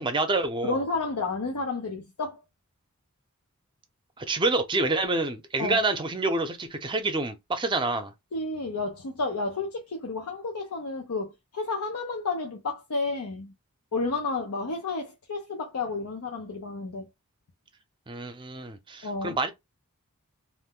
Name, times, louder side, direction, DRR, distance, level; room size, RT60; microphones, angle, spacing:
voice 1, 0.0-0.8 4.2-8.1 18.1-19.5, right 2 dB, 20° right, 0.6 m, -27 dB
voice 2, 0.6-2.4 5.6-5.8 8.3-13.5 13.9-17.1 19.0-19.4, left 3 dB, 90° left, 0.6 m, -31 dB
2.5 x 2.1 x 3.6 m
head